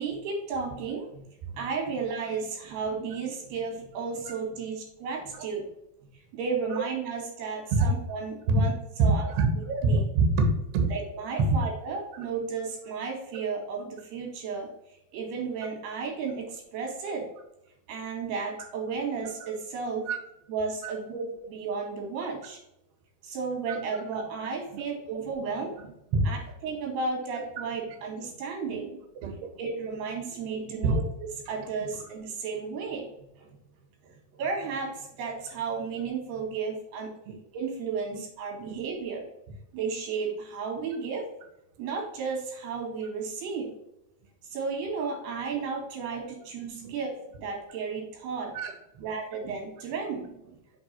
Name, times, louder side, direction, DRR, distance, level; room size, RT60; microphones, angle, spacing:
voice 1, 0.0-5.6 6.3-8.7 9.0-9.3 9.6-10.0 10.9-17.3 17.9-20.1 20.5-22.6 23.2-25.9 26.3-26.4 26.6-28.9 29.6-31.0 31.5-33.5 34.0-37.1 37.5-39.3 39.7-41.2 41.8-43.7 44.5-48.5 49.0-50.6, right 5 dB, 90° right, 0 dB, 4.1 m, -33 dB
voice 2, 9.9-10.9 20.1-20.2 20.8-20.9 23.7-23.8 24.7-24.8 26.1-26.3 28.7-28.9 29.1-29.5 30.8-31.0 37.3-37.4 38.7-38.8 46.8-46.9 48.5-49.0, right 3 dB, 60° right, 4 dB, 1.6 m, -26 dB
7.9 x 3.5 x 5.4 m, 0.82 s
omnidirectional pair, 4.4 m